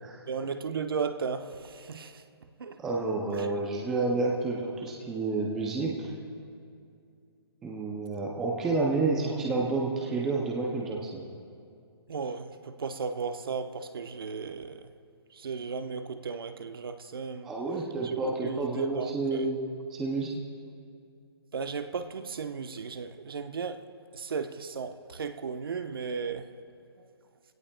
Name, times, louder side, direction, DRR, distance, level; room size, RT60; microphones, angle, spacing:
voice 1, 0.3-2.8 3.3-3.5 12.1-14.8 15.3-17.5 18.0-19.5 21.5-23.8 24.1-26.5 27.0-27.1, right 5 dB, 60° right, 0.9 m, -35 dB
voice 2, 2.8-6.1 7.6-11.2 17.4-20.4, right 3 dB, 5° right, 0.4 m, -30 dB
25.0 x 17.0 x 2.2 m
hypercardioid pair, 175°, 14 cm